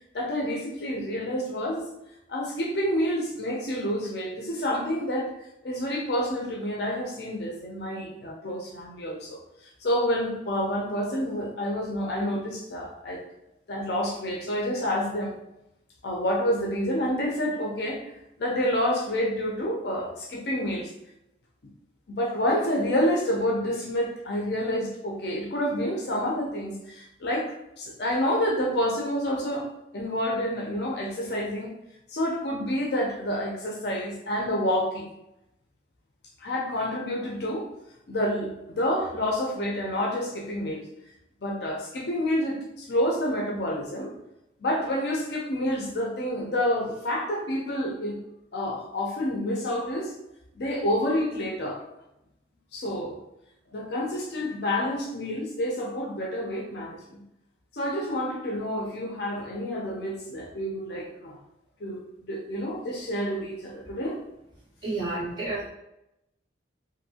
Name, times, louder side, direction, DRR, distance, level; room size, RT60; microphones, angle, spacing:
voice 1, 0.1-1.9 2.3-5.3 5.6-9.4 9.8-13.2 13.7-15.4 16.0-18.1 18.4-20.9 22.1-29.7 29.9-31.8 32.1-35.1 36.4-37.7 38.1-40.9 41.4-44.1 44.6-48.2 48.5-50.1 50.5-51.8 52.7-53.2 53.7-57.2 57.7-61.4 61.8-64.2, equal, 55° left, 0 dB, 0.5 m, -28 dB
voice 2, 64.8-65.7, right 2 dB, 25° right, -11 dB, 1.5 m, -30 dB
2.6 x 2.6 x 2.7 m, 0.86 s
head